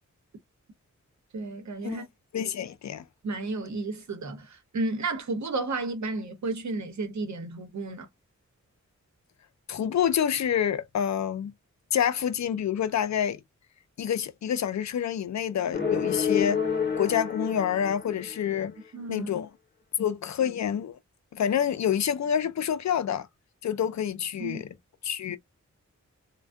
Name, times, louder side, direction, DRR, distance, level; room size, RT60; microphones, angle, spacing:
voice 1, 1.3-2.0 3.2-8.1 18.9-19.3 24.4-24.6, right 2 dB, 65° right, 0.9 m, -32 dB
voice 2, 2.3-3.0 9.7-11.5 11.9-13.4 14.0-16.6 17.0-18.7 19.1-19.5 20.0-21.0 21.3-23.3 23.6-24.7 25.0-25.4, left 9 dB, 65° left, 0.5 m, -27 dB
sound 1, 15.7-18.6, left 7 dB, 35° left, 0.8 m, -28 dB
2.5 x 2.2 x 2.2 m
wide cardioid pair, 75°, 30 cm